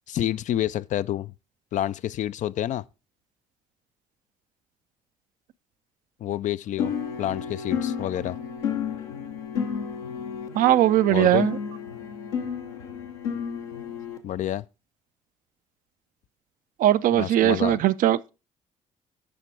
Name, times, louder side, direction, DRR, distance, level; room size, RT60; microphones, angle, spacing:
voice 1, 0.1-1.3 1.7-2.8 6.2-6.9 7.2-8.4 11.1-11.5 14.2-14.7 17.1-17.8, left 12 dB, 50° left, 0.4 m, -28 dB
sound 1, 6.8-14.2, left 7 dB, 80° left, 1.0 m, -32 dB
voice 2, 10.5-11.6 16.8-18.3, right 12 dB, 55° right, 0.5 m, -20 dB
7.7 x 5.8 x 4.9 m
figure-of-eight pair, 45°, 16 cm